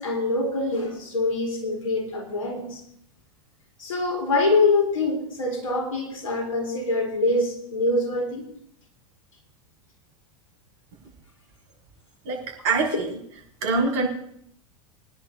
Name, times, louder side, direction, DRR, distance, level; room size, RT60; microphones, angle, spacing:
voice 1, 0.0-2.8 3.8-8.5 12.9-13.0, left 2 dB, 75° left, 1 dB, 3.7 m, -24 dB
voice 2, 12.6-13.2 13.6-14.1, right 3 dB, 55° right, -1 dB, 5.8 m, -23 dB
25.5 x 11.0 x 2.7 m, 0.70 s
figure-of-eight pair, 85°, 18 cm